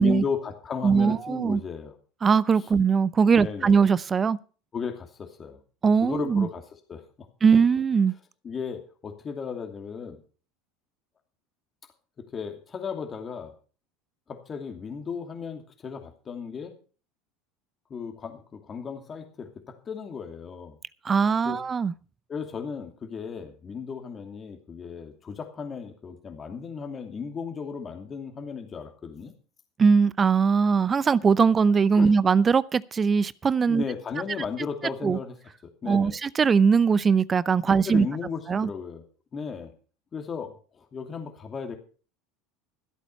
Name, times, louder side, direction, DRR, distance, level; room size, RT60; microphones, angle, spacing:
voice 1, 0.0-1.9 2.6-2.7 3.3-3.8 4.7-5.6 6.0-6.6 6.9-7.3 8.4-10.2 12.2-13.5 14.3-16.7 17.9-20.8 21.4-21.6 22.3-29.3 31.9-32.1 33.7-35.4 35.6-36.2 37.7-39.1 39.3-39.7 40.1-41.7, left 6 dB, 35° left, 2.6 m, -35 dB
voice 2, 0.8-1.6 2.2-4.4 5.8-6.5 7.4-8.1 21.0-21.9 29.8-33.8 35.0-35.2 35.9-38.1 38.5-38.7, right 5 dB, 30° right, 0.6 m, -21 dB
14.5 x 8.3 x 5.6 m
hypercardioid pair, 80°, 0 cm